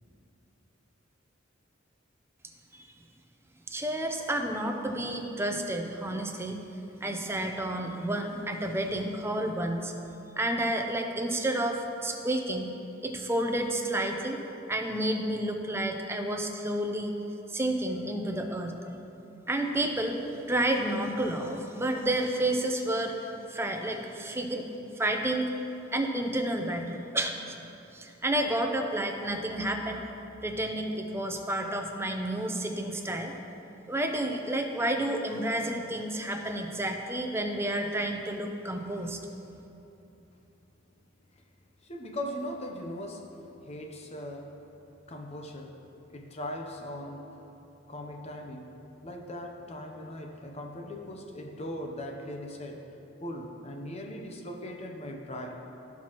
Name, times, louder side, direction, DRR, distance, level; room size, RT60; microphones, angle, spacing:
voice 1, 3.7-6.6 7.0-9.9 10.4-12.7 13.0-14.4 14.7-17.1 17.5-19.0 19.5-20.2 20.5-24.6 25.0-25.5 25.9-27.4 27.9-30.1 30.4-33.3 33.9-39.2, right 1 dB, 10° right, 4 dB, 0.6 m, -30 dB
voice 2, 41.8-44.6 45.1-45.8 46.1-47.4 47.9-48.8 49.0-52.9 53.2-55.6, left 1 dB, 30° left, 2 dB, 0.7 m, -39 dB
16.5 x 6.0 x 3.0 m, 2.9 s
head